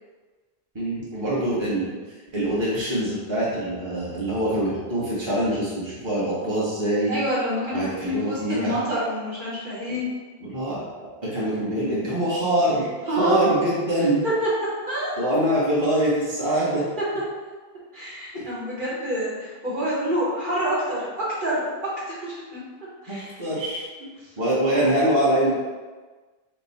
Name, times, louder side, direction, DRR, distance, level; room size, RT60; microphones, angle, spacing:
voice 1, 0.7-2.0 2.3-7.1 7.7-8.7 10.4-10.8 11.2-14.2 15.2-16.8 18.3-18.4 23.1-23.8 24.4-25.5, right 1 dB, 25° right, -8 dB, 1.2 m, -24 dB
voice 2, 7.1-10.1 13.1-13.5 14.2-14.5 14.9-15.1 16.7-17.0 17.9-21.6 22.2-22.6 23.0-23.4, right 1 dB, 55° right, -8 dB, 1.3 m, -27 dB
5.3 x 2.2 x 4.0 m, 1.3 s
omnidirectional pair, 1.0 m